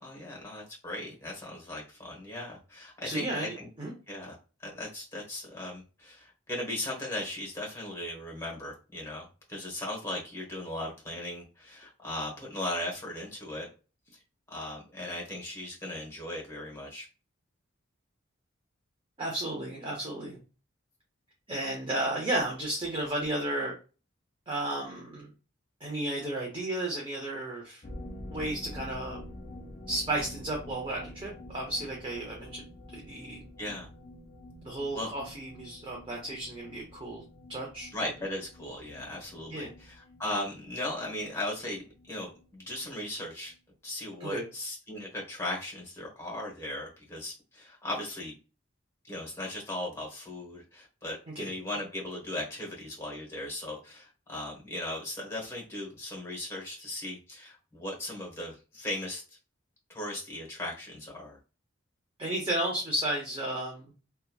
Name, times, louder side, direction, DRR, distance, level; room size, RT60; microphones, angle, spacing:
voice 1, 0.0-3.7 4.1-4.4 4.6-13.7 14.5-17.1 33.6-33.9 34.9-35.1 37.9-43.5 43.8-48.3 49.0-59.2 59.9-61.4, left 1 dB, 15° left, -2 dB, 0.9 m, -37 dB
voice 2, 3.0-3.9 19.2-20.4 21.5-23.7 24.5-25.3 25.8-27.8 28.3-29.2 29.9-32.6 32.9-33.4 34.6-37.2 37.5-37.9 39.5-39.7 44.2-44.5 51.3-51.5 62.2-63.9, right 1 dB, 25° right, -2 dB, 0.6 m, -33 dB
sound 1, 27.8-43.2 43.5-43.6 43.9-44.0, left 1 dB, 30° left, 0.4 m, -47 dB
2.9 x 2.2 x 2.2 m, 0.33 s
head